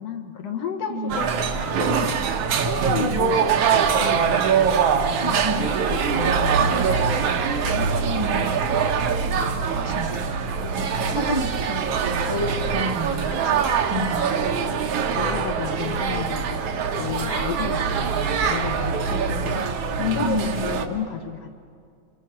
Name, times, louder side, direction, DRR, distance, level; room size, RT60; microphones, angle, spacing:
voice 1, 0.0-2.2 2.7-7.2 7.7-8.2 11.0-11.3 14.0-14.1 14.5-21.5, left 7 dB, 60° left, 4 dB, 2.4 m, -33 dB
voice 2, 0.9-1.2 3.0-3.4 5.2-5.7 8.1-8.6 9.6-14.4 20.2-20.7, equal, 20° right, 0 dB, 0.7 m, -30 dB
sound 1, 1.1-20.9, right 6 dB, 60° right, 1.8 m, -23 dB
27.5 x 22.0 x 6.0 m, 2.3 s
omnidirectional pair, 3.5 m